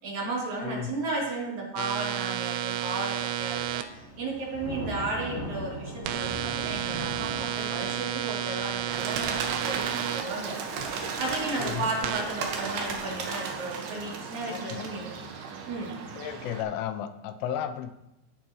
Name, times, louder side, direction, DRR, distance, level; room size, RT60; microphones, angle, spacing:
voice 1, 0.0-10.6 11.2-15.1 15.7-15.9, right 2 dB, 40° right, -5 dB, 3.9 m, -34 dB
voice 2, 0.6-0.9 11.6-11.8 14.5-14.8 16.2-17.9, left 10 dB, 85° left, 10 dB, 3.1 m, -33 dB
sound 1, 1.8-3.8 6.1-10.2 12.0-12.2, right 11 dB, 90° right, 3.3 m, -31 dB
Thunder / Rain, 3.2-12.7, right 1 dB, 50° left, 5.0 m, -42 dB
Bird, 8.9-16.6, right 5 dB, 70° right, 2.8 m, -35 dB
16.0 x 9.8 x 3.1 m, 0.90 s
omnidirectional pair, 5.7 m